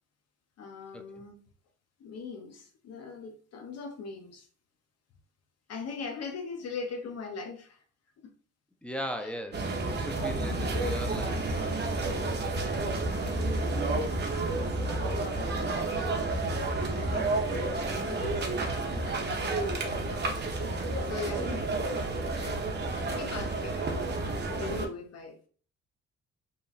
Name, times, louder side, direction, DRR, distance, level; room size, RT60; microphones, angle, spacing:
voice 1, 0.6-1.4 2.0-4.5 5.7-7.8 9.2-9.3 10.3-10.7 12.1-13.0 15.2-15.9 16.9-20.4 21.0-21.8 22.3-24.2 24.6-25.5, left 4 dB, 55° left, 0.5 m, -41 dB
voice 2, 8.8-11.5 21.4-21.6, equal, 5° left, 0.3 m, -38 dB
sound 1, 9.5-24.9, right 2 dB, 35° right, 0.7 m, -30 dB
2.8 x 2.4 x 2.4 m
cardioid pair, 90°, 30 cm